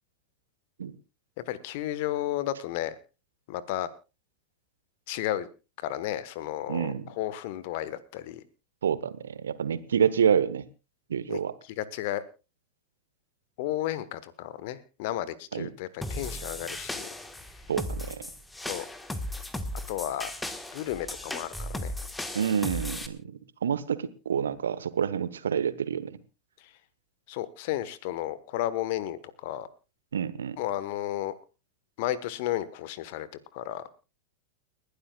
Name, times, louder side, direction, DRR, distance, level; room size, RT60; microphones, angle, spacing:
voice 1, 1.5-2.9 3.5-3.9 5.1-5.5 5.8-8.4 11.3-11.4 11.8-12.2 13.6-17.1 18.7-18.8 19.9-20.3 20.7-21.9 27.3-29.7 30.6-31.3 32.0-33.3 33.5-33.8, left 13 dB, 50° left, 16 dB, 1.2 m, -33 dB
voice 2, 6.7-7.1 8.8-10.7 11.1-11.5 15.5-15.7 17.7-18.2 22.3-23.3 23.6-26.2 30.1-30.6, right 8 dB, 65° right, 16 dB, 1.0 m, -28 dB
sound 1, 16.0-23.1, left 1 dB, 5° left, 1.3 m, -36 dB
30.0 x 11.5 x 2.3 m, 0.30 s
figure-of-eight pair, 90°, 0 cm